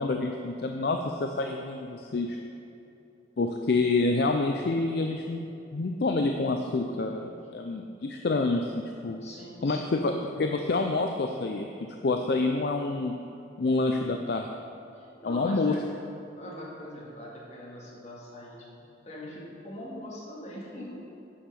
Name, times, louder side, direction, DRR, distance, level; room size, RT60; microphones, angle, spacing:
voice 1, 0.0-2.4 3.4-5.5 5.7-8.7 9.0-9.2 9.6-11.7 12.0-13.1 13.6-14.5 15.2-15.8, left 3 dB, 55° left, 3 dB, 0.4 m, -27 dB
voice 2, 9.2-10.0 14.9-15.9 16.3-18.7 19.0-20.9, left 1 dB, 35° left, -5 dB, 2.1 m, -42 dB
8.6 x 5.6 x 6.7 m, 2.8 s
head